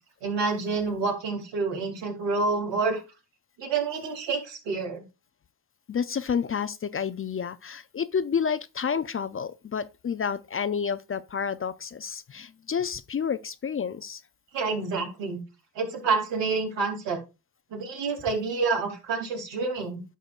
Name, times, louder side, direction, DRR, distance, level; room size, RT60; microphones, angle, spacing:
voice 1, 0.2-3.0 3.6-5.0 14.5-15.4 15.7-17.2 17.7-20.0, right 4 dB, 80° right, 2.9 m, -28 dB
voice 2, 5.9-14.2, left 7 dB, 30° left, 0.5 m, -30 dB
11.0 x 6.4 x 2.5 m
cardioid pair, 70°, 43 cm